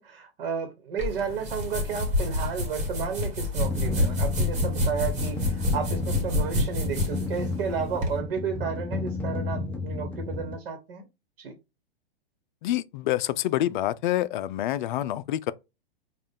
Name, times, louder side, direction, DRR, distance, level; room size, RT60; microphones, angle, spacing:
voice 1, 0.0-11.0 11.4-11.6, right 6 dB, 60° right, 1.2 m, -32 dB
sound 1, 1.0-8.2, left 2 dB, 25° right, 1.7 m, -28 dB
sound 2, 3.6-10.6, left 3 dB, 5° left, 0.5 m, -32 dB
voice 2, 12.6-15.5, left 13 dB, 50° left, 0.5 m, -27 dB
5.2 x 2.4 x 3.6 m
hypercardioid pair, 115°, 31 cm